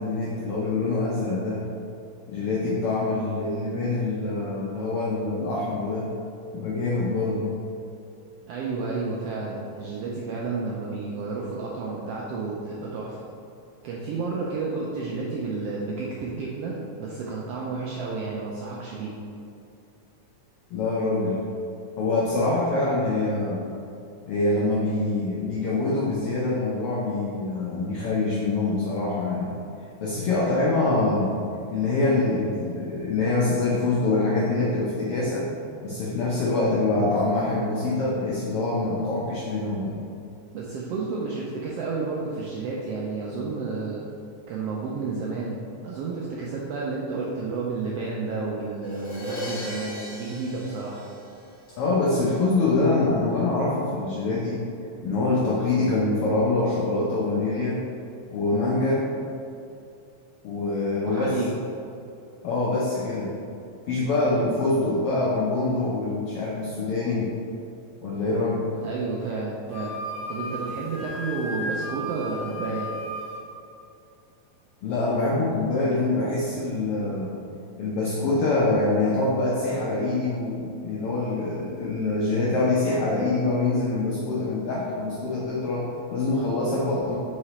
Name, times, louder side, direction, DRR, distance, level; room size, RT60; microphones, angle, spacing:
voice 1, 0.0-1.6 2.3-6.1 6.5-7.5 20.7-21.4 22.0-23.6 24.2-29.5 30.0-31.3 31.7-35.5 35.8-40.0 51.7-54.6 55.0-57.8 58.3-59.1 60.4-61.4 62.4-63.4 63.9-67.3 68.0-68.7 74.8-77.3 77.8-87.2, left 2 dB, 80° left, -5 dB, 1.3 m, -25 dB
voice 2, 8.5-13.2 13.8-19.2 40.5-44.0 44.5-51.0 61.0-61.5 68.8-70.0 70.3-72.9, right 4 dB, 80° right, -4 dB, 1.4 m, -31 dB
Crash cymbal, 48.8-51.8, left 1 dB, 45° left, 1.6 m, -37 dB
Wind instrument woodwind instrument, 69.7-73.4, equal, 65° right, 1.7 m, -34 dB
4.9 x 4.8 x 4.2 m, 2.7 s
omnidirectional pair, 3.4 m